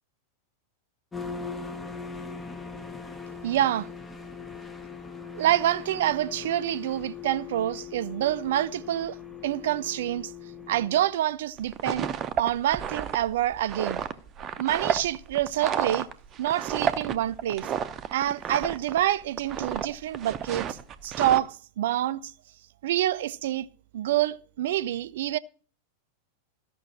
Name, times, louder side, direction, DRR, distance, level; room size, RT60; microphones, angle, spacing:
sound 1, 1.1-11.0, left 5 dB, 10° left, 1.2 m, -40 dB
voice 1, 3.4-3.9 5.3-9.2 9.4-10.3 10.7-12.1 12.4-14.0 14.6-16.1 16.4-17.7 18.1-22.3 22.8-23.7 23.9-25.4, right 12 dB, 55° right, 0.4 m, -27 dB
sound 2, 11.6-19.0 19.3-19.9 20.1-21.4, right 8 dB, 30° right, 0.8 m, -31 dB
14.0 x 6.1 x 7.1 m
figure-of-eight pair, 90°, 0 cm